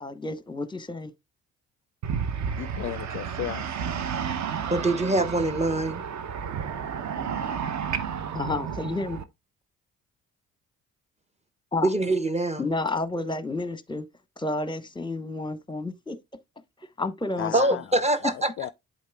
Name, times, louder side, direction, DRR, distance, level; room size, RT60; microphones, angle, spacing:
voice 1, 0.0-1.1 8.3-9.2 11.7-11.9 12.6-14.0 14.4-16.2 17.0-17.5, left 2 dB, 10° left, 0.9 m, -30 dB
sound 1, 2.0-9.2, right 7 dB, 45° right, 0.8 m, -31 dB
voice 2, 2.6-3.6 17.4-17.8 18.2-18.7, left 13 dB, 35° left, 0.4 m, -34 dB
voice 3, 4.7-6.0 11.8-12.7 17.5-18.5, right 2 dB, 15° right, 0.7 m, -24 dB
11.5 x 4.0 x 2.3 m
figure-of-eight pair, 45°, 40 cm